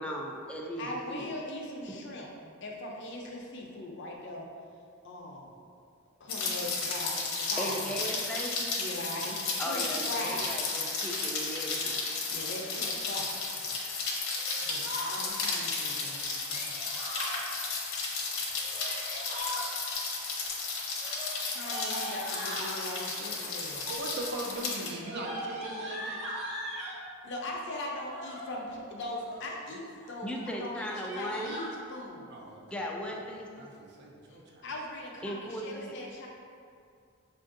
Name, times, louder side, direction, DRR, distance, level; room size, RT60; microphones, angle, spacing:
voice 1, 0.0-1.3 2.2-2.3 7.6-8.8 9.6-12.1 30.2-31.6 32.7-33.7 35.2-35.9, equal, 5° left, -1 dB, 0.3 m, -37 dB
voice 2, 0.8-2.3 2.6-4.5 5.0-5.5 6.2-7.9 8.7-10.5 12.3-13.8 14.1-14.2 14.6-16.8 21.5-23.8 27.2-32.4 34.6-36.3, left 1 dB, 60° left, -1 dB, 0.6 m, -40 dB
Rain, 6.3-24.9, left 4 dB, 80° left, 0.9 m, -34 dB
Yell, 14.3-15.1 16.5-17.4 18.5-19.7 21.0-22.8 23.6-24.0 24.3-27.0 27.9-28.5 29.0-29.6 30.0-30.1 30.3-30.5 30.8-31.7, equal, 35° right, 1.2 m, -40 dB
voice 3, 23.9-26.2 32.3-32.7 33.6-34.7, right 2 dB, 55° right, -1 dB, 0.5 m, -39 dB
5.4 x 2.5 x 2.5 m, 2.4 s
head